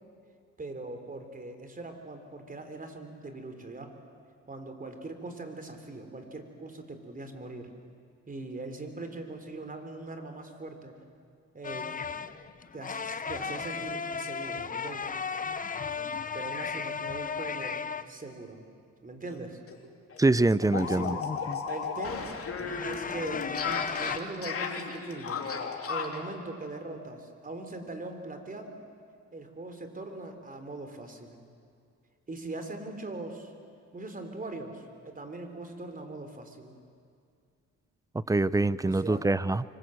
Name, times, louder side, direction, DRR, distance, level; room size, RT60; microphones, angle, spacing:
voice 1, 0.6-3.9 4.5-7.7 8.3-10.9 11.5-11.9 12.7-15.1 16.3-17.8 18.1-18.6 19.0-19.6 20.6-21.3 21.7-22.3 22.9-25.5 25.9-28.8 29.3-31.4 32.3-33.5 33.9-36.7 38.8-39.2, right 2 dB, 30° right, 6 dB, 3.8 m, -41 dB
sound 1, 11.6-18.1 20.7-21.6 22.6-24.2, left 5 dB, 25° left, 0.9 m, -35 dB
sound 2, 19.3-19.4 19.7-19.8 20.1-26.3, left 5 dB, 50° left, 3.0 m, -35 dB
voice 2, 20.2-21.2 38.1-39.6, right 2 dB, 10° right, 18 dB, 0.6 m, -24 dB
25.0 x 25.0 x 7.9 m, 2.3 s
cardioid pair, 90°, 30 cm